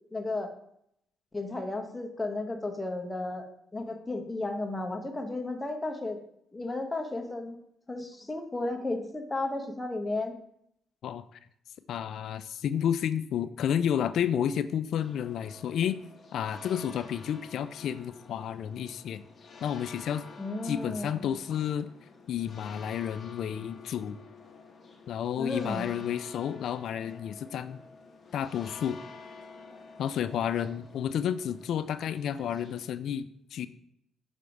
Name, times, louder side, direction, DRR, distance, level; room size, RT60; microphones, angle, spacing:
voice 1, 0.1-0.5 1.3-3.5 3.7-6.2 6.5-7.6 7.9-10.3 20.4-21.4 25.4-25.9, left 2 dB, 15° left, 4 dB, 0.9 m, -33 dB
voice 2, 11.0-11.4 11.9-16.0 16.3-19.2 19.6-20.3 20.6-21.9 22.3-24.2 25.1-27.8 28.3-29.0 30.0-33.7, left 9 dB, 70° left, 13 dB, 0.3 m, -31 dB
sound 1, 14.9-32.9, left 4 dB, 40° left, 1.1 m, -50 dB
5.7 x 3.4 x 5.1 m, 0.73 s
cardioid pair, 90°, 0 cm